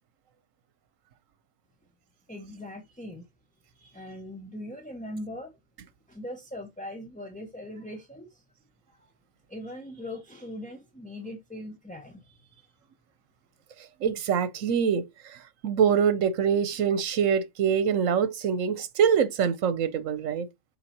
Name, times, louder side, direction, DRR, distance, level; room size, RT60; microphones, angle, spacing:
voice 1, 2.3-3.2 3.7-5.5 6.1-8.4 9.5-12.7, left 1 dB, 5° left, 1.0 m, -40 dB
voice 2, 14.0-15.0 15.6-20.5, right 7 dB, 80° right, 1.2 m, -24 dB
7.3 x 4.7 x 2.9 m
omnidirectional pair, 1.3 m